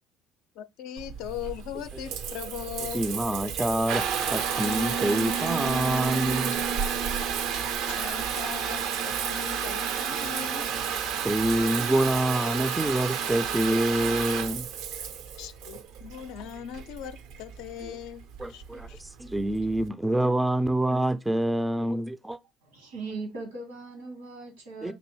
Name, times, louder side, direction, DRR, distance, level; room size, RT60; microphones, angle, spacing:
voice 1, 0.6-3.0 7.8-10.6 15.4-19.0, left 11 dB, 65° left, 0.4 m, -40 dB
Water tap faucet / Bathtub (filling or washing) / Trickle dribble, 1.0-19.9, right 7 dB, 65° right, 0.5 m, -31 dB
voice 2, 2.9-6.6 11.2-14.7 17.9-18.0 18.4-22.4 24.8-24.9, right 1 dB, 10° right, 0.4 m, -26 dB
voice 3, 22.7-24.9, right 3 dB, 80° right, 1.4 m, -39 dB
5.3 x 2.6 x 3.0 m
hypercardioid pair, 60°, 0 cm